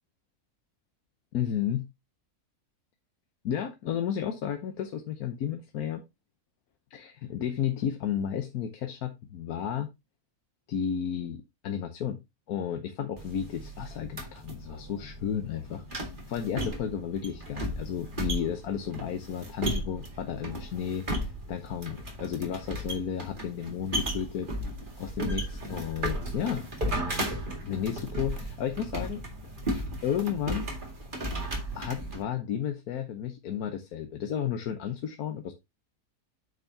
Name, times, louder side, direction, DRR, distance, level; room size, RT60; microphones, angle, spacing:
voice 1, 1.3-1.8 3.4-6.0 6.9-9.9 10.7-12.2 12.5-24.5 25.0-26.6 27.6-29.2 30.0-30.7 31.7-35.5, left 9 dB, 85° left, 1.4 m, -33 dB
sound 1, 13.2-32.2, right 1 dB, 35° right, 2.2 m, -35 dB
8.9 x 6.7 x 2.7 m
omnidirectional pair, 1.6 m